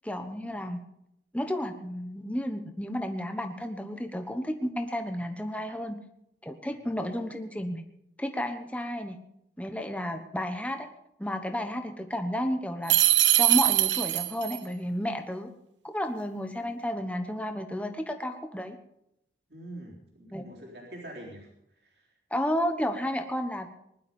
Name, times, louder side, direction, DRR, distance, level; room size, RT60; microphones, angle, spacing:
voice 1, 0.0-0.8 1.3-6.0 6.4-7.8 8.2-9.2 9.6-10.9 11.2-12.9 13.4-15.5 15.8-18.8 20.3-20.4 22.3-23.7, equal, 10° left, 6 dB, 1.1 m, -32 dB
sound 1, 12.9-14.6, right 15 dB, 75° right, 0.8 m, -22 dB
voice 2, 19.5-22.1, right 1 dB, 60° right, -2 dB, 3.9 m, -45 dB
20.5 x 11.5 x 5.4 m, 0.78 s
head